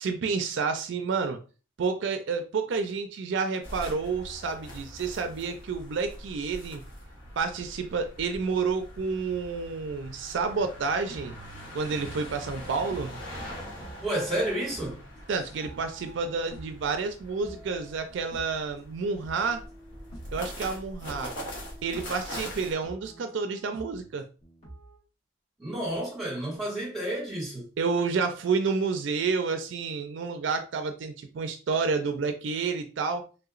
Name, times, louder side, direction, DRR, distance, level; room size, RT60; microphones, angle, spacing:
voice 1, 0.0-1.4 1.8-6.8 7.4-11.4 11.7-13.1 15.3-19.6 20.3-21.3 21.8-24.3 27.8-33.3, right 4 dB, 65° right, 0.4 m, -29 dB
sound 1, 3.6-22.7, equal, 65° left, 1.1 m, -43 dB
sound 2, 10.9-17.1 17.4-18.9 19.2-20.5 21.0-22.3 22.8-25.0, right 1 dB, 35° left, 1.3 m, -48 dB
voice 2, 14.0-15.0 25.6-27.7, right 1 dB, ahead, 1.6 m, -30 dB
3.3 x 2.8 x 2.4 m
head